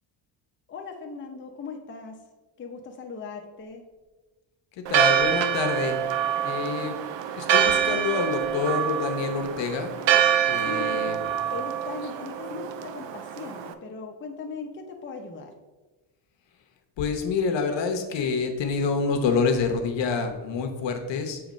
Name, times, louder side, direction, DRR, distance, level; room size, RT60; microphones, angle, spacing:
voice 1, 0.7-2.2 2.6-3.8 10.6-11.2 11.5-15.5, left 4 dB, 25° left, 2 dB, 0.6 m, -38 dB
voice 2, 4.9-6.0 6.4-7.0 7.3-10.0 10.5-11.2 17.0-21.4, left 5 dB, 65° left, 5 dB, 1.0 m, -27 dB
Church bell, 4.9-13.7, right 9 dB, 65° right, 0.6 m, -25 dB
7.0 x 3.0 x 5.1 m, 1.2 s
cardioid pair, 135°, 47 cm